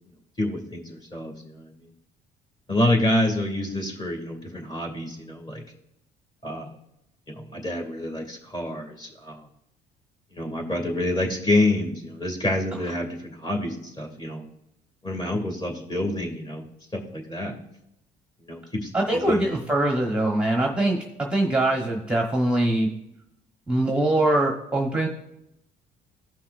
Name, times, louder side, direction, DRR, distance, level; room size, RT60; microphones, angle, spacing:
voice 1, 0.4-1.9 2.7-5.6 6.4-6.8 7.3-9.5 10.3-14.4 15.0-16.6 16.9-17.5 18.4-19.4, left 1 dB, 25° left, 1 dB, 2.2 m, -27 dB
voice 2, 18.9-22.9 23.7-25.1, right 1 dB, 5° right, 1 dB, 1.0 m, -23 dB
15.5 x 5.7 x 2.5 m, 0.84 s
cardioid pair, 110°, 17 cm